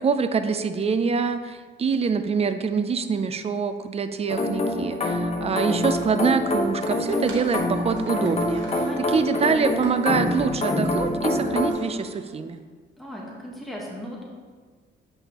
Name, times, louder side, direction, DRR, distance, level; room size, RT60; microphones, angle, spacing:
voice 1, 0.0-8.7 9.1-12.6, right 5 dB, 30° right, 10 dB, 0.5 m, -25 dB
sound 1, 4.3-11.7, left 1 dB, 30° left, 1.1 m, -26 dB
sound 2, 6.4-12.5, right 3 dB, 80° right, 1.4 m, -46 dB
voice 2, 8.9-9.2 13.0-14.2, equal, ahead, -3 dB, 1.3 m, -37 dB
8.3 x 5.5 x 3.0 m, 1.5 s
cardioid pair, 90°, 20 cm